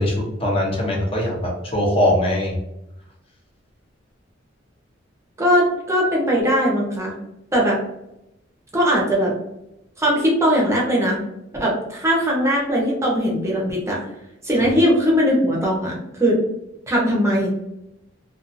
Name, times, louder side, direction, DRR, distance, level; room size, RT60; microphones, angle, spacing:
voice 1, 0.0-2.6 14.6-14.7, left 1 dB, 30° left, -1 dB, 0.7 m, -21 dB
voice 2, 5.4-7.1 7.5-7.8 8.7-9.3 10.0-11.2 11.6-14.0 14.4-16.4 16.9-17.5, equal, 15° right, -3 dB, 0.7 m, -19 dB
2.6 x 2.4 x 2.5 m, 0.87 s
head